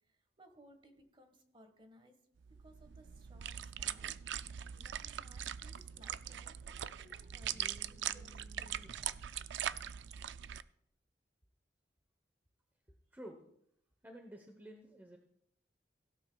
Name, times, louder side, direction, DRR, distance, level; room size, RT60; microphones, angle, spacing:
voice 1, 0.1-2.2 2.6-4.1 4.7-9.1, equal, 30° right, 7 dB, 1.5 m, -62 dB
sound 1, 2.4-10.6, right 10 dB, 80° right, 0.4 m, -42 dB
voice 2, 7.4-9.1 10.5-10.6 13.1-13.4 14.0-15.2, equal, 10° right, 3 dB, 0.9 m, -54 dB
16.5 x 12.0 x 2.3 m, 0.71 s
head